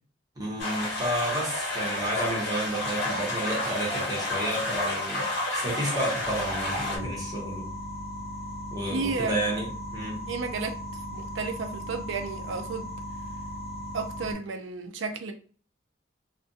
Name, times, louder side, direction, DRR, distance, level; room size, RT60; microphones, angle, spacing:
voice 1, 0.4-7.7 8.7-10.2, right 1 dB, 20° right, 0.9 m, -31 dB
sound 1, 0.6-7.0, left 1 dB, 65° left, 0.9 m, -30 dB
sound 2, 6.2-14.3, equal, 35° left, 1.0 m, -37 dB
voice 2, 8.9-9.4 10.3-10.8 11.1-12.9 13.9-15.3, right 4 dB, 85° right, 0.5 m, -32 dB
2.4 x 2.2 x 2.6 m
head